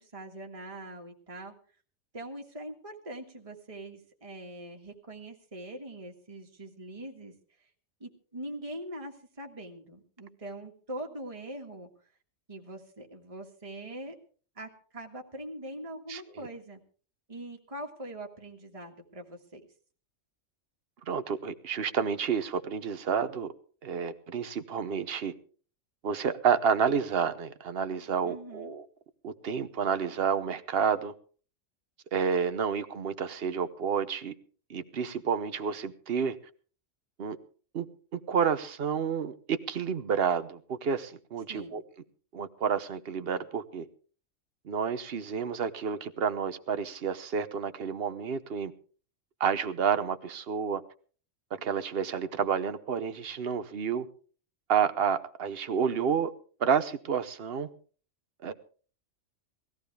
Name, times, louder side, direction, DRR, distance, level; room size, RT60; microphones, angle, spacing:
voice 1, 0.0-1.5 2.1-7.3 8.0-11.9 12.5-14.2 14.6-16.8 17.3-19.6 28.2-28.8 41.5-41.8, right 1 dB, 25° right, 1.9 m, -42 dB
voice 2, 16.1-16.5 21.1-23.5 23.8-25.3 26.0-28.9 29.2-31.1 32.1-34.3 34.7-36.4 37.2-37.4 37.7-37.9 38.1-41.8 42.3-43.9 44.6-48.7 49.4-50.8 51.6-54.1 54.7-56.3 56.6-57.7 58.4-58.5, right 7 dB, 50° right, 1.1 m, -30 dB
19.5 x 15.0 x 3.4 m
omnidirectional pair, 1.3 m